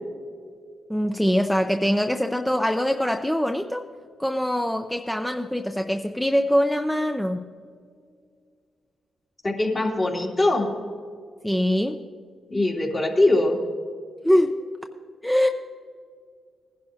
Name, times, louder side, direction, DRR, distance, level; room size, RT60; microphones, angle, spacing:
voice 1, 0.9-3.8 4.2-7.5 11.4-12.0 14.2-14.6 15.2-15.5, equal, 5° left, 5 dB, 0.6 m, -23 dB
voice 2, 9.4-10.7 12.5-13.6, left 2 dB, 40° left, -2 dB, 3.0 m, -22 dB
19.5 x 11.0 x 2.8 m, 2.1 s
supercardioid pair, 50°, 0 cm